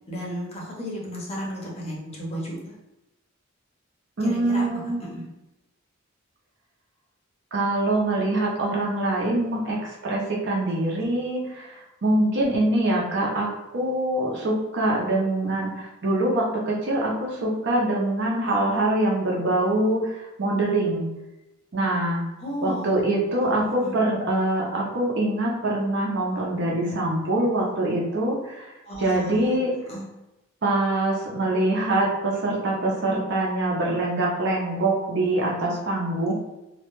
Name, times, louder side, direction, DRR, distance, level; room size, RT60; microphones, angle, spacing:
voice 1, 0.1-2.7 4.2-4.7 5.0-5.2 22.4-23.0 23.3-24.0 28.8-29.6 29.9-30.0, equal, 30° left, -4 dB, 0.6 m, -34 dB
voice 2, 4.2-5.2 7.5-9.8 10.0-11.7 12.0-21.1 21.7-22.2 22.6-28.7 29.0-29.7 30.6-36.3, right 1 dB, 55° right, -2 dB, 0.5 m, -24 dB
2.2 x 2.1 x 3.0 m, 0.95 s
head